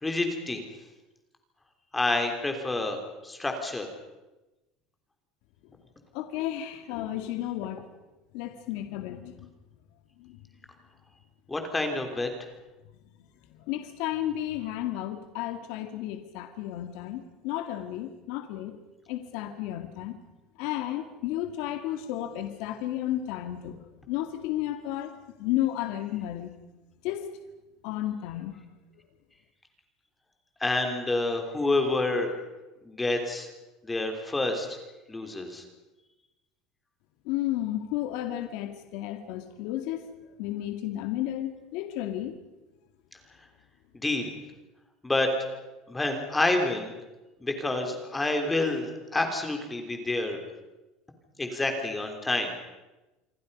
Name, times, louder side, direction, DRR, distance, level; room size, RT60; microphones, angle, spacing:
voice 1, 0.0-0.6 1.9-3.0 3.2-3.9 11.5-12.3 30.6-32.3 32.8-33.5 33.8-34.8 35.1-35.6 43.9-44.3 45.0-45.3 45.9-46.9 47.4-50.4 51.4-52.5, left 2 dB, 10° left, 4 dB, 3.2 m, -28 dB
voice 2, 6.1-7.8 8.3-9.5 10.2-10.4 13.7-18.8 19.1-20.2 20.6-26.5 27.0-27.3 27.8-28.6 37.3-40.1 40.4-42.3, left 13 dB, 70° left, 6 dB, 2.2 m, -33 dB
28.0 x 23.5 x 5.5 m, 1.1 s
cardioid pair, 155°, 0 cm